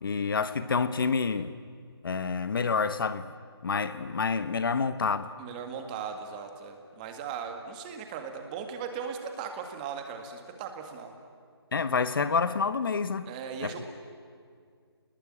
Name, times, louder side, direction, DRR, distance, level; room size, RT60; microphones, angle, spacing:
voice 1, 0.0-1.5 2.0-3.3 3.6-5.3 11.7-13.3 13.6-13.8, left 5 dB, 55° left, 12 dB, 1.1 m, -28 dB
voice 2, 5.4-11.1 13.3-13.8, right 6 dB, 20° right, 5 dB, 2.0 m, -38 dB
29.5 x 20.5 x 8.9 m, 2.1 s
hypercardioid pair, 165°, 14 cm